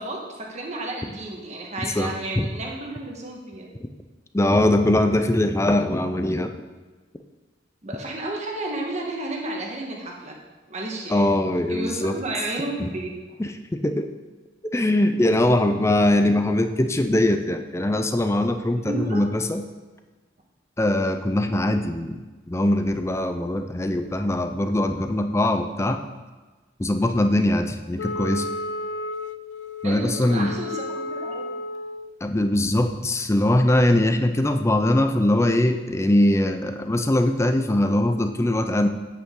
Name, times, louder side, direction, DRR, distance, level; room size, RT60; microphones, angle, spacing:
voice 1, 0.0-3.7 7.8-10.4 10.7-11.4 11.7-13.2 18.8-19.2 29.8-31.4, right 2 dB, 40° right, 0 dB, 1.6 m, -32 dB
voice 2, 2.0-2.5 4.3-6.5 11.1-12.2 12.8-12.9 13.4-14.1 14.7-19.6 20.8-26.0 26.8-28.4 29.8-30.5 32.2-38.9, left 1 dB, 15° left, 7 dB, 0.5 m, -21 dB
Wind instrument woodwind instrument, 28.0-32.1, left 2 dB, 70° left, 0.4 m, -32 dB
8.8 x 8.5 x 3.8 m, 1.3 s
head